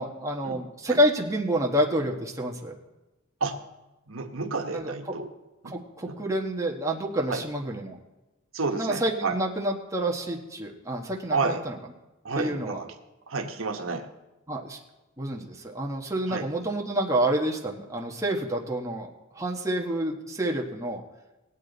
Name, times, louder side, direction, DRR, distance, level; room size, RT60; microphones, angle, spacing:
voice 1, 0.0-2.7 4.7-4.9 5.6-8.0 8.8-11.8 12.3-12.8 14.5-14.8 15.2-21.0, right 1 dB, 15° right, 0 dB, 1.3 m, -28 dB
voice 2, 4.1-5.3 5.6-6.2 7.3-7.4 8.5-9.3 11.3-11.6 12.2-12.9 13.3-14.1 16.3-16.5, right 4 dB, 90° right, 4 dB, 1.2 m, -30 dB
19.0 x 8.4 x 4.0 m, 1.0 s
head